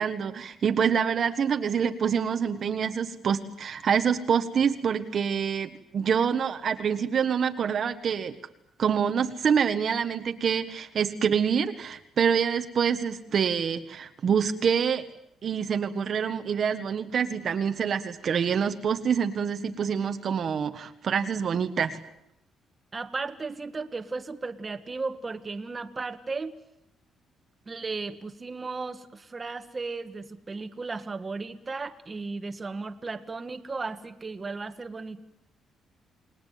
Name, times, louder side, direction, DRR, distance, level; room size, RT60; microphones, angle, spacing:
voice 1, 0.0-8.4 8.8-15.0 15.4-22.0, right 7 dB, 50° right, 8 dB, 1.4 m, -26 dB
voice 2, 22.9-26.5 27.7-35.2, right 3 dB, 25° right, 8 dB, 1.6 m, -35 dB
29.0 x 19.5 x 9.4 m, 0.82 s
cardioid pair, 115°, 0 cm